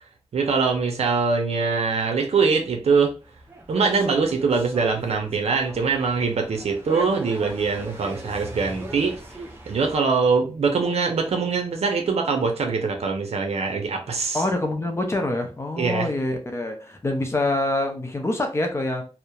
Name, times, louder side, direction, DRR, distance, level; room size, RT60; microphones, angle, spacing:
voice 1, 0.3-3.1 3.7-9.2 9.7-14.4 15.8-16.1, right 4 dB, 85° right, 4 dB, 0.6 m, -23 dB
sound 1, 3.2-10.0, right 1 dB, 20° right, 0.6 m, -39 dB
voice 2, 14.3-19.0, left 2 dB, 25° left, 4 dB, 0.5 m, -25 dB
2.8 x 2.0 x 2.3 m, 0.34 s
wide cardioid pair, 135°, 10 cm